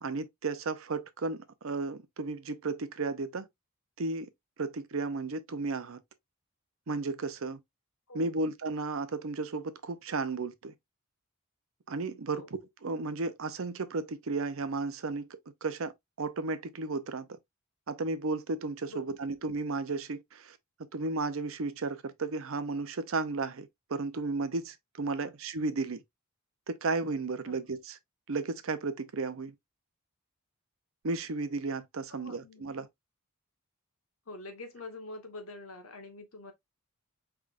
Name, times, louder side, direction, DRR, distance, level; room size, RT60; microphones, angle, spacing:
voice 1, 0.0-3.5 4.0-4.3 4.6-6.0 6.9-7.6 8.1-10.7 11.9-12.4 12.8-15.3 15.6-17.3 17.9-20.6 20.9-26.0 26.7-28.0 28.3-29.5 31.0-32.9, right 3 dB, 65° right, 0.6 m, -34 dB
voice 2, 8.1-8.4 12.3-12.5 18.9-19.0 25.2-25.3 27.4-27.6 32.1-32.6 34.3-36.5, left 2 dB, 75° left, 1.3 m, -45 dB
4.9 x 3.5 x 2.5 m
head